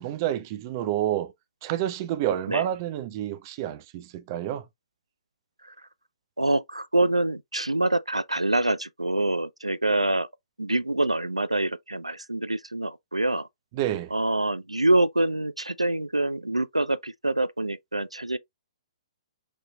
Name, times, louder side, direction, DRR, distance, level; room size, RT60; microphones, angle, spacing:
voice 1, 0.0-1.3 1.6-4.7 13.7-14.1, right 12 dB, 35° right, 0.5 m, -29 dB
voice 2, 6.4-10.3 10.6-13.5 14.1-18.4, right 2 dB, 90° right, 0.3 m, -25 dB
5.2 x 3.0 x 2.2 m
figure-of-eight pair, 120°, 3 cm